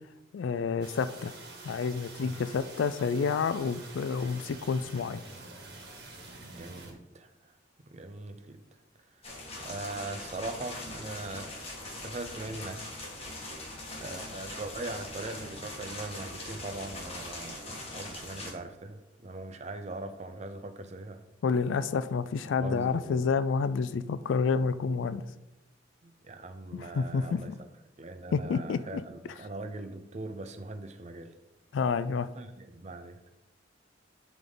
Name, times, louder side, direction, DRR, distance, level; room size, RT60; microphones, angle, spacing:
voice 1, 0.3-1.3 1.6-5.2 21.4-25.2 26.7-27.4 28.3-28.8 31.7-32.3, left 5 dB, 85° left, 13 dB, 0.4 m, -29 dB
sound 1, 0.8-6.9, right 2 dB, 55° right, 1.8 m, -47 dB
voice 2, 6.5-7.5 7.9-8.6 9.6-11.5 11.8-12.8 14.0-21.2 22.6-23.2 26.0-27.7 28.0-31.3 32.3-33.3, right 2 dB, 40° right, 9 dB, 0.6 m, -41 dB
sound 2, 9.2-18.5, left 2 dB, 35° left, 1.6 m, -41 dB
10.5 x 3.6 x 3.8 m, 0.95 s
head